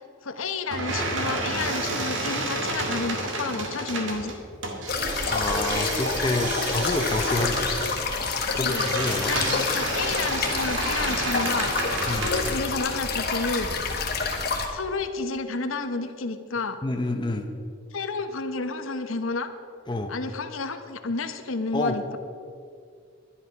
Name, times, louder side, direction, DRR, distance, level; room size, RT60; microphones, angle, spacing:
voice 1, 0.2-4.4 8.6-8.9 9.3-11.7 12.1-13.7 14.7-16.8 17.9-19.5 20.1-22.2, left 3 dB, 90° left, 8 dB, 0.9 m, -31 dB
sound 1, 0.7-12.5, right 2 dB, 70° right, 1.9 m, -30 dB
sound 2, 4.9-14.7, left 4 dB, 50° left, 1.6 m, -28 dB
voice 2, 5.3-7.7 8.2-9.4 12.1-12.3 14.4-14.5 16.8-17.5 19.9-20.1 21.7-22.0, left 2 dB, 25° left, 4 dB, 0.8 m, -28 dB
11.5 x 11.5 x 5.9 m, 2.2 s
head